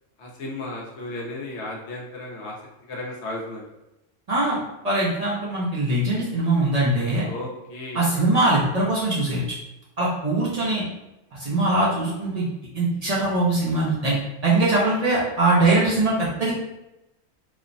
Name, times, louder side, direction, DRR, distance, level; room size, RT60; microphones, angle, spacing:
voice 1, 0.2-2.6 2.9-3.6 7.2-8.3, left 2 dB, 70° left, -3 dB, 1.0 m, -34 dB
voice 2, 4.3-4.6 4.8-7.2 7.9-9.4 10.0-10.8 11.3-12.5 12.7-14.1 14.4-16.5, right 2 dB, 45° right, -7 dB, 0.6 m, -22 dB
3.2 x 2.0 x 2.5 m, 0.93 s
omnidirectional pair, 1.3 m